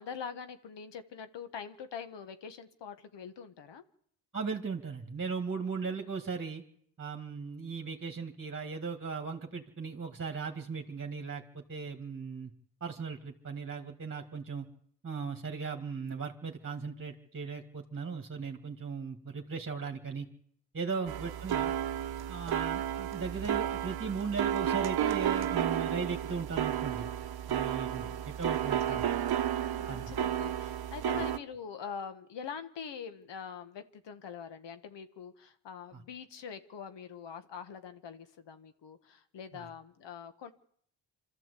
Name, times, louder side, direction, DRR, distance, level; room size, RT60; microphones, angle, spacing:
voice 1, 0.0-3.8 20.9-21.2 27.7-28.3 28.6-29.3 29.6-40.5, left 7 dB, 70° left, 10 dB, 1.4 m, -44 dB
voice 2, 4.3-6.6 7.0-12.5 12.8-14.7 15.0-20.3 20.7-21.7 22.3-27.1 27.5-29.0 29.9-30.1 35.9-36.0 39.5-39.7, right 5 dB, 30° right, 4 dB, 2.0 m, -37 dB
sound 1, 21.1-31.4, right 10 dB, 60° right, 0.9 m, -32 dB
24.5 x 13.5 x 8.3 m, 0.68 s
cardioid pair, 80°, 44 cm